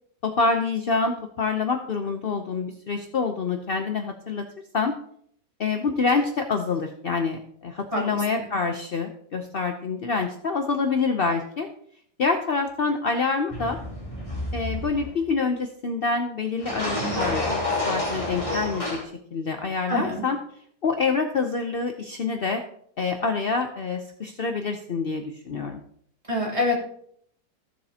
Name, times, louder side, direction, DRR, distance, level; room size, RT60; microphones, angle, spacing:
voice 1, 0.2-4.5 4.7-4.9 5.6-11.7 12.2-13.8 14.5-20.4 20.8-22.6 23.0-25.8, left 4 dB, 65° left, 5 dB, 0.5 m, -26 dB
sound 1, 13.5-15.2 16.6-19.0, left 1 dB, 20° left, 2.7 m, -29 dB
voice 2, 19.9-20.2 26.3-26.8, left 2 dB, 20° right, -4 dB, 2.9 m, -25 dB
15.0 x 7.4 x 2.8 m, 0.64 s
omnidirectional pair, 1.9 m